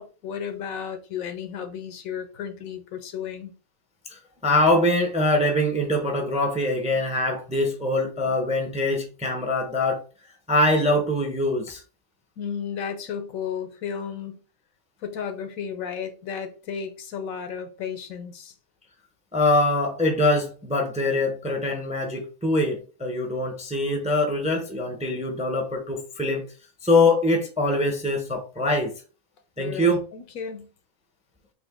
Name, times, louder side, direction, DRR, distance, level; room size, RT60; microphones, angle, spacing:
voice 1, 0.0-3.5 12.4-14.4 15.0-18.5 29.6-30.7, left 7 dB, 85° left, 1.2 m, -33 dB
voice 2, 4.1-10.0 10.5-11.8 19.3-26.4 26.8-28.9 29.6-30.0, left 1 dB, 10° right, 0.5 m, -23 dB
4.2 x 2.8 x 3.5 m
omnidirectional pair, 1.4 m